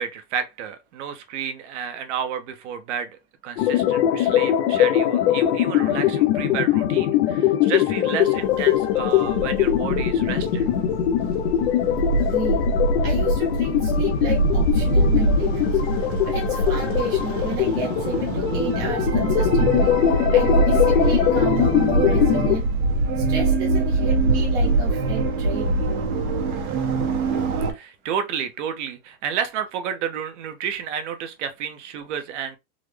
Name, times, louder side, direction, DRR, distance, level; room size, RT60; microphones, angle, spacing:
voice 1, 0.0-10.7 27.7-32.6, right 8 dB, 55° right, 0.8 m, -31 dB
sound 1, 3.6-22.6, left 11 dB, 50° left, 0.5 m, -22 dB
sound 2, 8.3-27.7, right 2 dB, 80° right, 1.2 m, -23 dB
voice 2, 12.2-12.6 13.0-15.7 16.2-19.9 20.3-22.7 23.2-25.9, right 4 dB, 10° right, 0.4 m, -32 dB
3.7 x 2.1 x 3.1 m
supercardioid pair, 175°, 43 cm